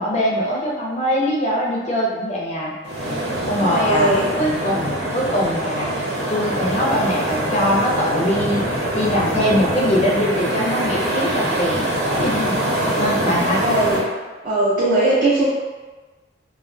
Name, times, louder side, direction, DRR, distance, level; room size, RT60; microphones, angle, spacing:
voice 1, 0.0-2.7 3.1-3.2 3.5-4.1 4.4-12.6 13.0-13.6, equal, 40° left, -4 dB, 0.5 m, -22 dB
sound 1, 2.8-14.0, right 1 dB, 70° right, 0.9 m, -23 dB
voice 2, 3.5-4.2 13.6-14.0 14.4-15.5, right 2 dB, 50° right, -10 dB, 0.5 m, -19 dB
2.2 x 2.2 x 2.5 m, 1.3 s
head